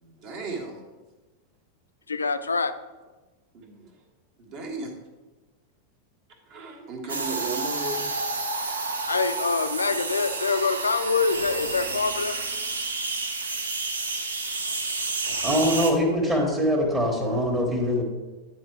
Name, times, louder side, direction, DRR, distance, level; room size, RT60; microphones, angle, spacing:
voice 1, 0.0-0.8 3.5-3.9 4.4-4.9 6.5-8.2 9.4-9.5, right 3 dB, 45° right, 1 dB, 1.4 m, -35 dB
voice 2, 2.1-2.7 9.1-12.3, left 4 dB, 75° left, 11 dB, 0.4 m, -25 dB
sound 1, 7.1-15.9, right 3 dB, 75° right, 0.7 m, -30 dB
voice 3, 15.4-18.0, equal, 20° right, -1 dB, 1.4 m, -23 dB
9.3 x 4.6 x 4.6 m, 1.2 s
figure-of-eight pair, 90°, 0 cm